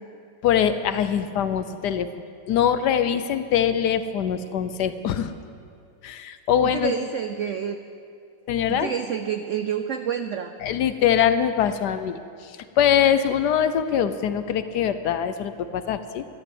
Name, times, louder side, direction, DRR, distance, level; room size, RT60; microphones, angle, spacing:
voice 1, 0.4-2.1 2.5-5.3 6.0-6.9 8.5-8.9 10.6-16.2, left 9 dB, 70° left, 11 dB, 1.2 m, -23 dB
voice 2, 6.7-7.8 8.7-10.5, right 8 dB, 75° right, 8 dB, 0.7 m, -28 dB
13.0 x 11.5 x 7.8 m, 2.4 s
omnidirectional pair, 2.0 m